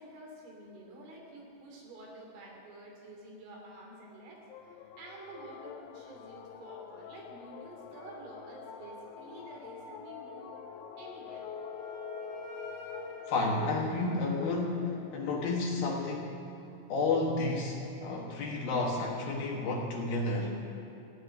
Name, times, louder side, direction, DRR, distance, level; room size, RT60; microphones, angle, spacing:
voice 1, 0.0-10.6 11.0-11.5, right 2 dB, 80° right, -1 dB, 5.5 m, -49 dB
sound 1, 4.5-16.3, left 7 dB, 85° left, 3.2 m, -46 dB
Wind instrument woodwind instrument, 11.0-14.9, left 2 dB, 30° left, 1.6 m, -48 dB
voice 2, 13.3-16.4 16.9-20.6, left 3 dB, 65° left, -1 dB, 2.7 m, -31 dB
16.0 x 8.7 x 9.5 m, 3.0 s
omnidirectional pair, 5.6 m